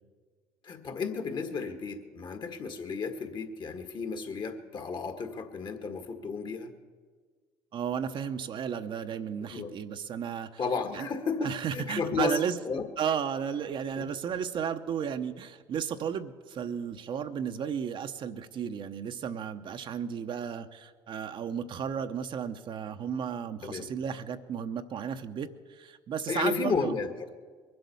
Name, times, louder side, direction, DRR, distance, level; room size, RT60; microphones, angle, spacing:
voice 1, 0.6-6.7 9.4-9.7 10.6-12.8 14.0-14.1 23.6-23.9 26.3-27.3, left 4 dB, 45° left, 8 dB, 1.8 m, -33 dB
voice 2, 7.7-10.6 10.9-11.1 11.4-12.6 13.0-26.9, right 7 dB, 50° right, 8 dB, 0.9 m, -34 dB
22.5 x 7.8 x 7.0 m, 1.5 s
hypercardioid pair, 70°, 11 cm